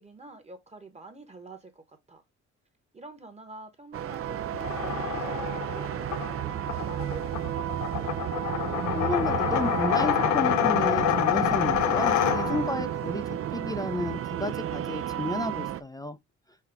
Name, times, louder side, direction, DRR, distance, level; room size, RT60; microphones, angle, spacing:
voice 1, 0.0-2.2 2.9-8.2, right 2 dB, 20° right, 1.1 m, -47 dB
sound 1, 3.9-15.8, right 11 dB, 50° right, 0.4 m, -32 dB
sound 2, 4.5-12.8, left 12 dB, 75° left, 0.5 m, -27 dB
voice 2, 8.9-13.2 13.5-16.2, left 2 dB, 15° left, 0.4 m, -32 dB
5.5 x 2.3 x 3.5 m
cardioid pair, 90°, 30 cm